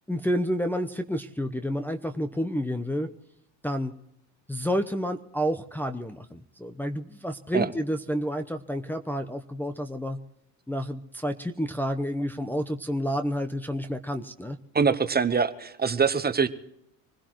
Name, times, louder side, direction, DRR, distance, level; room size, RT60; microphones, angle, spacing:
voice 1, 0.1-3.1 3.6-3.9 4.5-10.2 10.7-14.6, equal, 5° left, 4 dB, 0.8 m, -29 dB
voice 2, 14.7-16.5, right 5 dB, 20° right, 11 dB, 1.0 m, -24 dB
25.5 x 16.5 x 3.1 m, 0.79 s
supercardioid pair, 95°, 43 cm